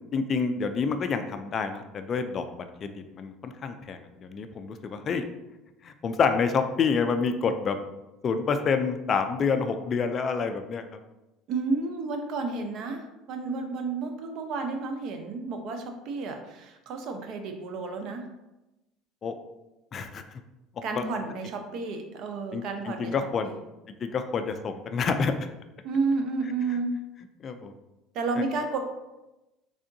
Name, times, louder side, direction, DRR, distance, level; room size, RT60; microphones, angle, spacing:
voice 1, 0.1-2.5 2.8-5.3 5.8-7.8 8.2-10.8 19.2-19.3 19.9-20.2 21.0-21.1 22.5-23.5 24.0-25.5 27.4-27.7, left 5 dB, 35° left, 8 dB, 0.3 m, -28 dB
voice 2, 11.5-18.3 20.8-23.1 23.4-23.6 25.8-27.0 28.1-28.8, right 3 dB, 55° right, 5 dB, 0.6 m, -31 dB
3.7 x 3.4 x 2.6 m, 0.99 s
cardioid pair, 125°, 0 cm